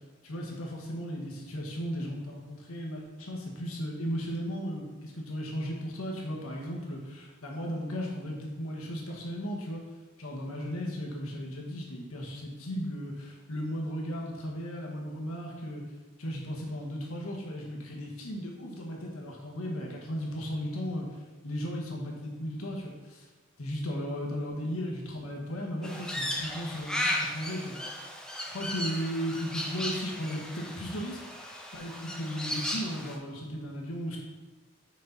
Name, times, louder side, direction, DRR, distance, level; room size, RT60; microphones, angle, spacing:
voice 1, 0.2-9.8 10.2-15.8 16.2-21.1 21.4-23.3 23.6-27.8 28.5-31.2 31.7-34.2, equal, 80° left, -1 dB, 1.3 m, -36 dB
Crow, 25.8-33.2, left 1 dB, 5° left, 0.5 m, -35 dB
6.4 x 4.3 x 4.0 m, 1.2 s
head